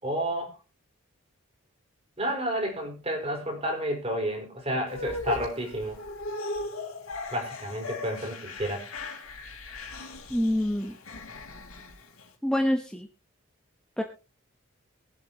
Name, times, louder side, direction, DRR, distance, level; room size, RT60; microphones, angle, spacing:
voice 1, 0.0-0.5 2.2-6.0 7.3-8.9, right 1 dB, 30° right, 2 dB, 4.6 m, -31 dB
sound 1, 4.9-12.3, left 2 dB, 80° left, 3.2 m, -38 dB
voice 2, 10.3-10.9 12.4-13.1 14.0-14.1, left 1 dB, 5° left, 4 dB, 0.9 m, -26 dB
23.0 x 7.8 x 2.9 m, 0.31 s
head